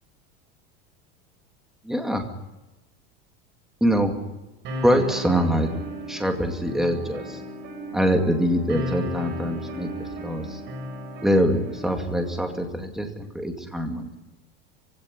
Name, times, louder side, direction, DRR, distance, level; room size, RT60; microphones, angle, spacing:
voice 1, 1.8-2.2 3.8-4.1 4.8-5.7 6.1-7.4 7.9-10.6 11.2-14.1, equal, ahead, 4 dB, 2.3 m, -24 dB
sound 1, 4.6-12.7, left 1 dB, 35° right, 6.4 m, -35 dB
25.0 x 16.5 x 9.7 m, 1.0 s
supercardioid pair, 170°, 31 cm